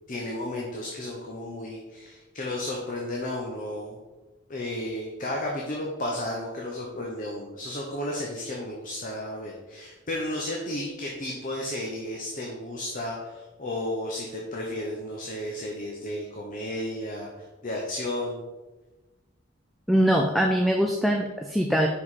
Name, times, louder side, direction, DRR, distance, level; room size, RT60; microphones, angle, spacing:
voice 1, 0.1-4.0 4.5-18.5, left 1 dB, 40° left, -1 dB, 0.8 m, -33 dB
voice 2, 19.9-21.9, equal, ahead, 1 dB, 0.3 m, -22 dB
5.6 x 4.9 x 4.1 m, 1.2 s
head